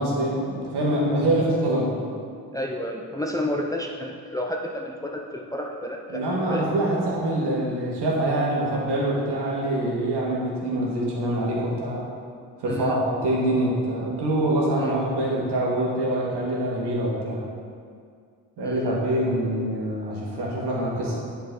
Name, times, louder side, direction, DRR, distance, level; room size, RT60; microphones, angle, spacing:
voice 1, 0.0-1.9 6.1-12.1 12.6-17.4 18.6-21.2, right 1 dB, 55° right, -3 dB, 1.9 m, -25 dB
voice 2, 2.5-6.6 6.9-7.0 7.2-7.3 12.7-13.0 14.8-14.9 18.6-18.9, left 1 dB, 10° left, 0 dB, 0.6 m, -31 dB
10.0 x 4.3 x 3.9 m, 2.2 s
figure-of-eight pair, 40°, 47 cm